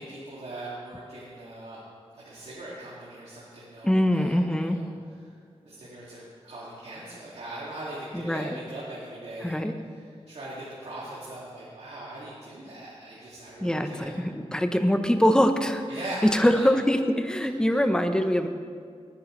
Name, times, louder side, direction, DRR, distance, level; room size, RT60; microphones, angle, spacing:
voice 1, 0.0-1.8 2.1-4.9 5.6-14.2 15.9-16.7 17.7-17.8 18.1-18.2, right 1 dB, 75° right, -8 dB, 2.4 m, -40 dB
voice 2, 3.8-4.8 8.1-8.6 9.4-9.7 13.6-15.8 16.2-18.5, equal, 5° left, 7 dB, 0.9 m, -23 dB
18.5 x 10.0 x 3.3 m, 2.1 s
wide cardioid pair, 75°, 11 cm